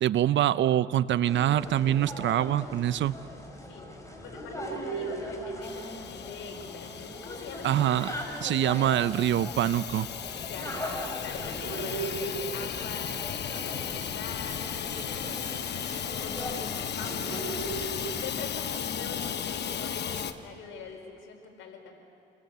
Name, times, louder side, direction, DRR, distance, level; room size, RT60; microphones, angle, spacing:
voice 1, 0.0-3.1 7.6-8.1 8.4-10.1, right 11 dB, 70° right, 15 dB, 0.8 m, -25 dB
sound 1, 1.2-20.5, right 1 dB, 15° left, 5.9 m, -39 dB
voice 2, 4.2-8.0 10.4-10.7 11.2-17.8 18.2-21.9, left 5 dB, 85° left, 2 dB, 4.8 m, -44 dB
Hiss / Toilet flush / Trickle dribble, 5.6-20.3, left 9 dB, 60° left, 1.1 m, -36 dB
sound 2, 13.1-13.2 13.5-13.7 14.0-14.1 14.5-14.6 15.0-15.5 15.9-16.0 16.4-17.0 17.3-17.4 17.8-17.9 18.3-18.4 18.7-19.3 19.7-19.8 20.2-20.4, right 5 dB, 40° right, 6.8 m, -50 dB
28.5 x 21.5 x 8.2 m, 2.5 s
cardioid pair, 90°, 20 cm